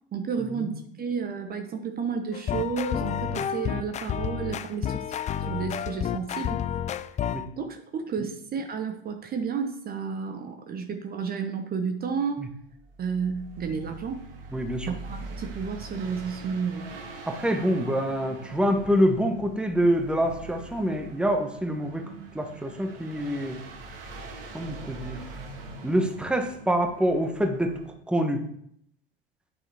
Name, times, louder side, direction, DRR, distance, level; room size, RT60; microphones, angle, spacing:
voice 1, 0.1-6.6 7.6-12.5 13.0-14.2 14.8-16.9, right 6 dB, 30° right, 6 dB, 1.0 m, -31 dB
sound 1, 2.3-7.5, left 9 dB, 25° left, 0.4 m, -30 dB
sound 2, 12.7-27.9, right 3 dB, 70° right, 1.8 m, -43 dB
voice 2, 14.5-14.9 17.3-22.0 22.3-23.6 24.5-25.2 25.8-27.7 28.1-28.4, equal, 5° right, 5 dB, 1.2 m, -26 dB
9.1 x 6.8 x 3.5 m, 0.69 s
hypercardioid pair, 80°, 29 cm